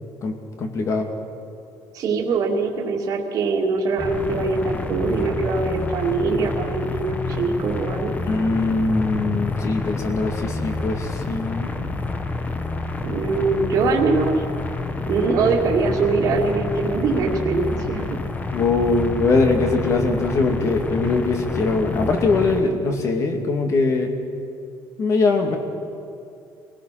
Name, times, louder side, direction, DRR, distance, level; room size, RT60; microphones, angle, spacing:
voice 1, 0.6-1.1 8.3-11.7 18.5-24.2 25.0-25.6, left 3 dB, 40° left, 4 dB, 2.4 m, -21 dB
voice 2, 1.9-8.1 13.0-14.4 15.1-18.2, right 4 dB, 45° right, -3 dB, 2.3 m, -22 dB
sound 1, 4.0-22.6, left 3 dB, 20° left, 1.0 m, -28 dB
25.5 x 18.0 x 6.0 m, 2.6 s
cardioid pair, 155°, 8 cm